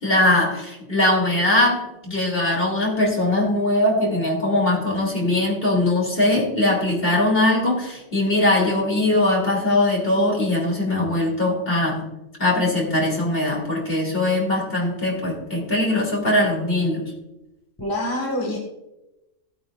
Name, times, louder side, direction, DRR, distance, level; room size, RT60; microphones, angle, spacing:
voice 1, 0.0-12.1 12.4-17.1, left 1 dB, 50° left, -2 dB, 3.2 m, -21 dB
voice 2, 17.8-18.6, left 1 dB, 15° left, -1 dB, 1.7 m, -25 dB
16.0 x 9.1 x 2.5 m, 0.95 s
omnidirectional pair, 1.3 m